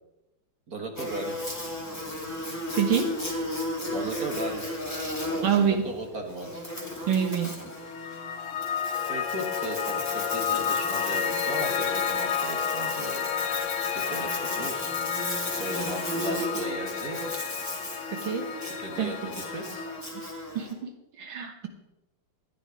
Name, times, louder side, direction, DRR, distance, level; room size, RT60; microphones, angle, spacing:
voice 1, 0.7-1.4 3.9-4.7 5.2-6.6 9.1-13.3 13.6-15.0 15.6-17.3 18.6-19.9, right 2 dB, 45° right, 3 dB, 2.0 m, -37 dB
Buzz, 1.0-20.7, left 1 dB, 10° left, 2.3 m, -35 dB
voice 2, 2.7-3.1 5.4-5.8 7.1-7.5 18.2-18.4 19.0-19.1 20.5-20.9 21.2-21.7, right 7 dB, 70° right, 4 dB, 2.2 m, -25 dB
Piano, 7.6-20.0, left 8 dB, 85° left, 1.7 m, -31 dB
13.5 x 10.0 x 4.9 m, 0.93 s
omnidirectional pair, 2.4 m